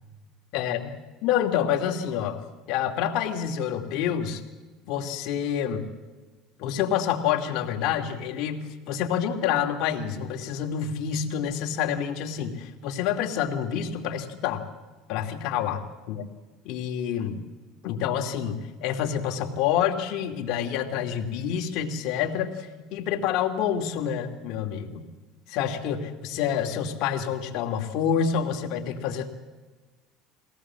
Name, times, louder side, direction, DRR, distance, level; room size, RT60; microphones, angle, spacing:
voice 1, 0.5-0.9 1.2-2.4 2.7-4.4 4.9-5.8 6.6-14.6 15.1-16.3 16.6-17.4 17.8-25.0 25.5-29.3, left 8 dB, 60° left, 3 dB, 2.6 m, -28 dB
22.0 x 18.0 x 7.6 m, 1.3 s
cardioid pair, 140°, 0 cm